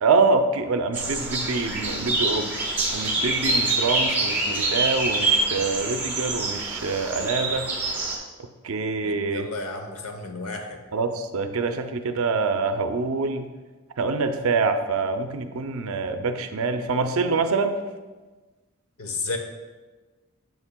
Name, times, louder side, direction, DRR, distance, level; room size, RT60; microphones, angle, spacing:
voice 1, 0.0-2.5 2.9-7.7 8.6-9.5 10.9-13.5 14.0-17.8, right 4 dB, 75° right, 7 dB, 0.5 m, -25 dB
sound 1, 0.9-8.2, right 2 dB, 10° right, 0.9 m, -26 dB
voice 2, 9.0-10.8 19.0-19.4, left 3 dB, 80° left, 4 dB, 0.9 m, -32 dB
8.0 x 7.0 x 2.2 m, 1.3 s
head